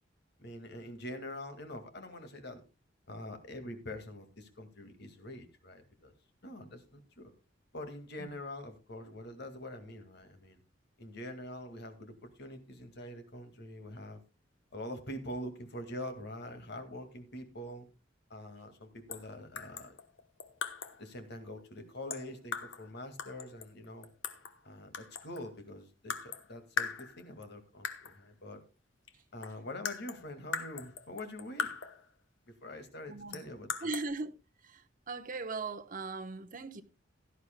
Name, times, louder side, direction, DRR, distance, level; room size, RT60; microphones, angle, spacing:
voice 1, 0.4-2.6 3.1-6.1 6.4-7.3 7.7-10.6 11.0-14.2 14.7-17.9 18.3-20.0 21.0-24.1 24.6-28.6 29.3-31.7 32.6-33.9, left 1 dB, 60° left, 2.1 m, -45 dB
sound 1, 19.1-19.3 19.6-21.0 22.1-22.9 23.2-24.6 24.9-25.5 26.1-26.5 26.8-27.5 27.8-28.2 29.1-29.2 29.4-32.1 33.3-34.1, left 6 dB, 80° left, 1.1 m, -39 dB
voice 2, 33.1-33.4 33.8-34.3 35.1-36.8, right 3 dB, 45° right, 1.0 m, -38 dB
16.5 x 11.5 x 2.2 m
head